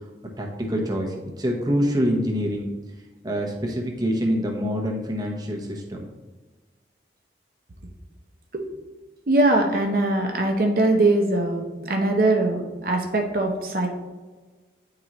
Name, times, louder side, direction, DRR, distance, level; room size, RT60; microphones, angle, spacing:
voice 1, 0.4-2.7 3.2-6.1, equal, 20° right, 0 dB, 0.9 m, -25 dB
voice 2, 9.3-13.9, right 2 dB, 50° right, 1 dB, 0.8 m, -21 dB
9.6 x 3.8 x 3.0 m, 1.3 s
head